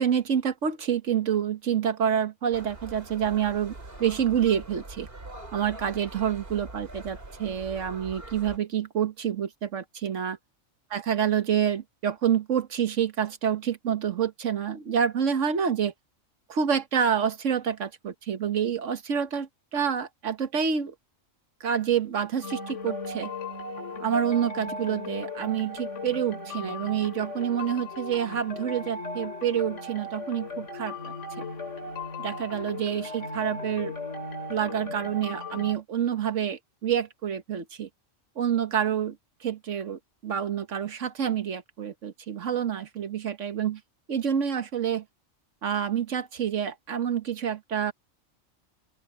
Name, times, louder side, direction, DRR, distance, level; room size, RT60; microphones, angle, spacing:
voice 1, 0.0-3.7 4.0-5.1 5.5-10.4 10.9-15.9 16.5-20.9 21.6-23.3 24.0-31.1 32.2-33.9 34.5-37.9 38.4-43.8 44.1-45.0 45.6-47.9, right 8 dB, 75° right, 1.6 m, -28 dB
sound 1, 2.5-8.6, right 2 dB, 50° right, 3.5 m, -43 dB
sound 2, 22.4-35.8, left 3 dB, 75° left, 3.1 m, -37 dB
open air
omnidirectional pair, 1.3 m